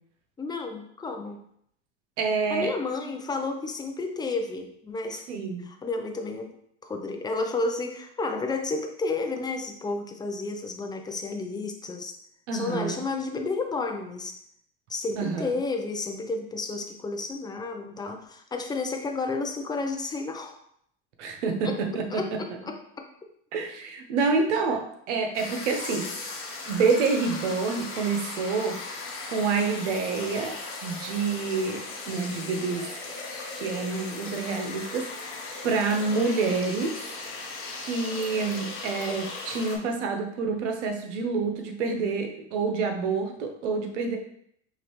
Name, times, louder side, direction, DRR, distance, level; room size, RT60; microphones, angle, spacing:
voice 1, 0.4-1.4 2.5-5.3 5.6-6.5 6.8-12.2 12.5-14.4 14.9-20.6 21.6-21.8 22.1-23.1, left 3 dB, 10° left, 4 dB, 0.5 m, -31 dB
voice 2, 2.2-2.7 5.3-5.6 12.5-13.0 15.2-15.5 21.2-21.7 21.9-22.2 23.5-26.1 26.7-29.0 29.3-30.5 30.8-32.8 33.5-35.3 35.6-37.0 37.8-44.2, right 4 dB, 90° right, 4 dB, 0.9 m, -27 dB
sound 1, 25.3-39.8, left 3 dB, 40° left, 1.2 m, -37 dB
5.2 x 3.1 x 3.0 m, 0.70 s
supercardioid pair, 110°, 34 cm